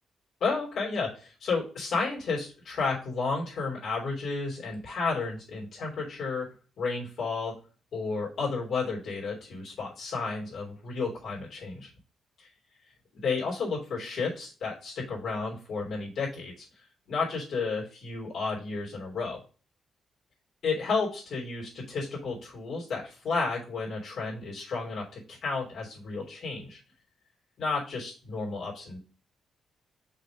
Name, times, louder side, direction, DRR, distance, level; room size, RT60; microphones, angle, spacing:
voice 1, 0.4-6.5 6.8-7.6 7.9-11.9 12.4-12.5 13.1-19.4 20.6-26.8 27.6-29.0, left 4 dB, 75° left, -4 dB, 3.0 m, -32 dB
5.8 x 3.5 x 5.9 m, 0.37 s
cardioid pair, 90°, 0 cm